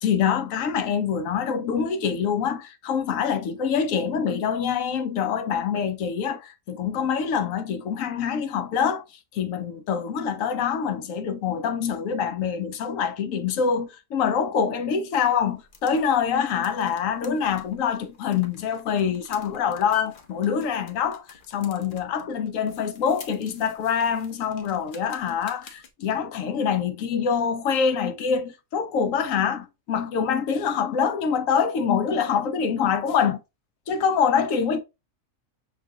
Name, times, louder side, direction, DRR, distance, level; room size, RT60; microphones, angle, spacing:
voice 1, 0.0-9.1 9.3-33.4 33.9-34.8, left 7 dB, 75° left, 1.0 m, -25 dB
sound 1, 15.4-25.9, left 9 dB, 55° left, 0.6 m, -43 dB
5.9 x 2.5 x 2.7 m
omnidirectional pair, 1.4 m